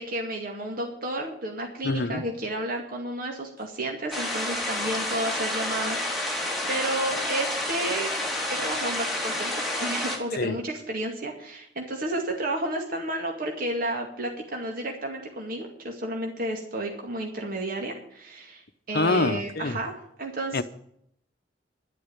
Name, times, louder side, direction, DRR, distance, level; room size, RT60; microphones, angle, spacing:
voice 1, 0.0-8.1 8.5-18.6 18.9-19.9 20.2-20.6, right 1 dB, 55° right, 2.3 m, -32 dB
voice 2, 1.8-2.2 10.4-10.6 18.9-19.8 20.5-20.6, left 3 dB, 60° left, 0.8 m, -25 dB
sound 1, 4.1-10.2, left 1 dB, ahead, 3.2 m, -29 dB
12.0 x 8.5 x 8.7 m
head